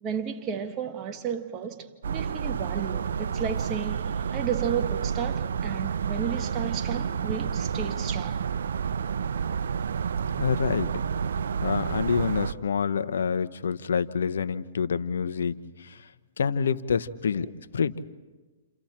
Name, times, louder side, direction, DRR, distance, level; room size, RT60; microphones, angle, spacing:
voice 1, 0.0-8.4 17.4-17.5, right 8 dB, 25° right, 1.6 m, -33 dB
sound 1, 2.0-12.5, right 7 dB, 80° right, 0.7 m, -30 dB
voice 2, 10.4-10.9 11.6-15.5 15.8-16.0 16.4-17.5 17.7-17.9, left 6 dB, 80° left, 0.9 m, -27 dB
29.5 x 29.0 x 4.4 m
hypercardioid pair, 140°, 0 cm